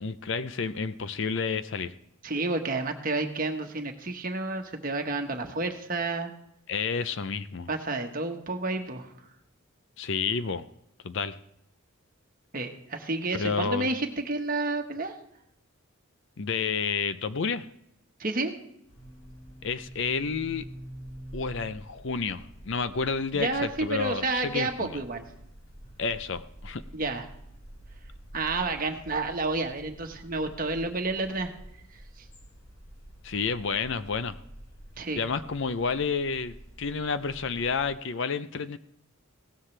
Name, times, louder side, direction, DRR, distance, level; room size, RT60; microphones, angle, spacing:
voice 1, 0.0-1.9 6.7-7.7 10.0-10.7 11.0-11.4 13.3-13.9 16.4-17.7 19.6-20.7 21.3-25.0 26.0-26.8 33.2-34.4 35.2-38.8, left 5 dB, 60° left, 13 dB, 0.6 m, -30 dB
voice 2, 2.2-6.3 7.7-9.1 12.5-15.1 18.2-18.5 23.3-25.2 26.9-27.3 28.3-31.5 31.9-32.2 35.0-35.2, right 3 dB, 40° right, 4 dB, 1.3 m, -30 dB
sound 1, 18.9-37.9, right 1 dB, 80° left, 5.0 m, -47 dB
17.0 x 13.0 x 3.3 m, 0.77 s
head